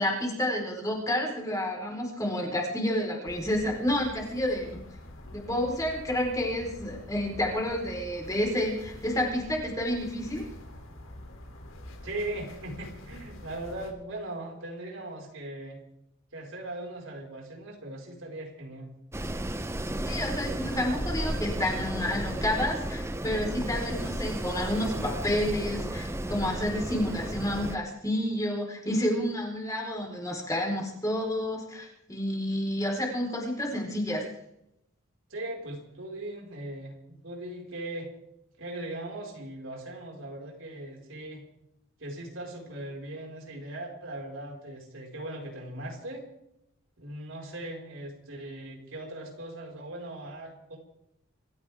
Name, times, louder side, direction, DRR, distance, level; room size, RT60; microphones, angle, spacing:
voice 1, 0.0-4.8 5.3-10.5 20.0-34.2, left 1 dB, 15° left, -1 dB, 4.4 m, -30 dB
sound 1, 3.2-13.9, left 1 dB, 80° left, 3.1 m, -46 dB
voice 2, 12.0-15.8 16.3-18.9 35.3-38.1 38.6-41.4 42.0-46.3 47.0-50.8, right 1 dB, 80° right, 0 dB, 5.0 m, -39 dB
Wind, 19.1-27.8, right 1 dB, 15° right, 0.7 m, -33 dB
26.5 x 15.0 x 3.6 m, 0.80 s
head